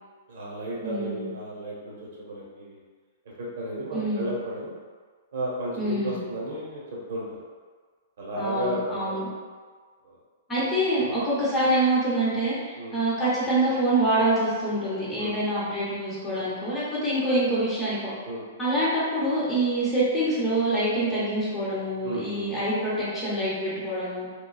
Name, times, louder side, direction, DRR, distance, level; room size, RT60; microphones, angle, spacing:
voice 1, 0.3-2.8 3.4-4.7 5.3-6.8 7.1-7.4 8.2-9.2 10.0-10.2 10.6-10.7 11.1-11.2 12.7-13.0 15.2-15.4 15.6-15.8 18.2-18.4 22.0-22.5, right 1 dB, 70° right, -5 dB, 0.9 m, -33 dB
voice 2, 0.8-1.3 3.9-4.3 5.8-6.2 8.4-9.3 10.5-18.1 18.6-24.3, right 1 dB, 15° left, -10 dB, 0.8 m, -26 dB
3.0 x 2.3 x 2.3 m, 1.5 s
hypercardioid pair, 150°, 0 cm